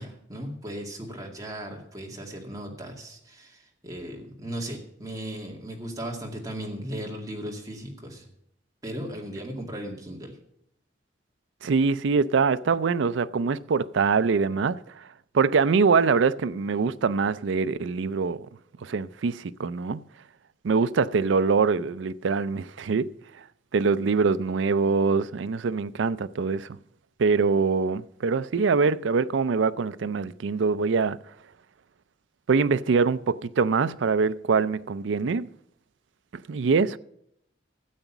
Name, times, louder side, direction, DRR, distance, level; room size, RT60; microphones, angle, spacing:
voice 1, 0.0-8.3 8.8-10.4, right 1 dB, 20° right, 2.2 m, -37 dB
voice 2, 11.6-14.8 15.3-18.5 18.8-20.0 20.6-23.1 23.7-26.7 27.2-31.2 32.5-35.5 36.5-37.0, right 5 dB, 75° right, 0.4 m, -24 dB
13.0 x 8.1 x 6.0 m
head